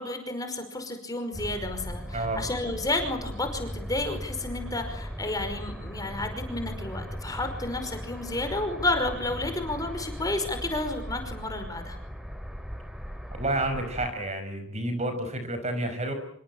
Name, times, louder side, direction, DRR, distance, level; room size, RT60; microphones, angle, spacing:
voice 1, 0.0-12.0, left 2 dB, 20° left, 6 dB, 5.4 m, -31 dB
sound 1, 1.3-14.1, equal, ahead, 3.0 m, -38 dB
voice 2, 13.4-16.1, right 1 dB, 35° right, 8 dB, 5.5 m, -30 dB
26.5 x 24.0 x 8.8 m, 0.64 s
head